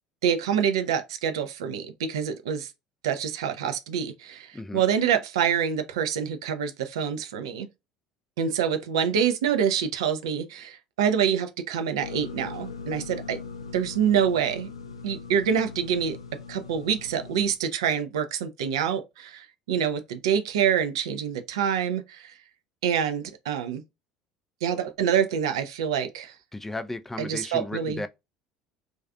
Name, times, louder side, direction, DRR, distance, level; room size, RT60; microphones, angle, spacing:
voice 1, 0.2-2.7 3.0-7.7 8.4-13.4 13.7-14.7 15.0-16.2 16.5-22.3 22.8-23.8 24.6-26.3 27.2-28.0, right 8 dB, 70° right, 0.4 m, -26 dB
sound 1, 12.0-17.5, left 5 dB, 85° left, 0.4 m, -40 dB
voice 2, 26.5-28.1, left 2 dB, 10° left, 0.3 m, -34 dB
2.4 x 2.4 x 2.3 m
figure-of-eight pair, 65°, 3 cm